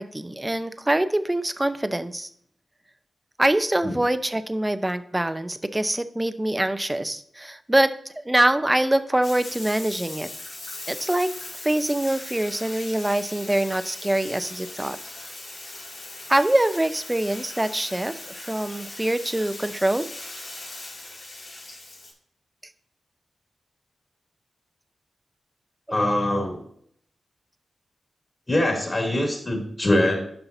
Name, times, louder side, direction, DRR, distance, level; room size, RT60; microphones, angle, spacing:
voice 1, 0.0-2.3 3.4-10.3 10.9-11.3 11.6-15.0 16.3-20.1, right 1 dB, 20° right, 12 dB, 0.6 m, -24 dB
Bathtub (filling or washing), 9.2-22.1, left 2 dB, 75° left, 3.6 m, -39 dB
voice 2, 25.9-26.6 28.5-30.3, left 1 dB, 35° left, 1 dB, 2.7 m, -23 dB
11.0 x 5.6 x 2.7 m, 0.65 s
supercardioid pair, 40°, 0 cm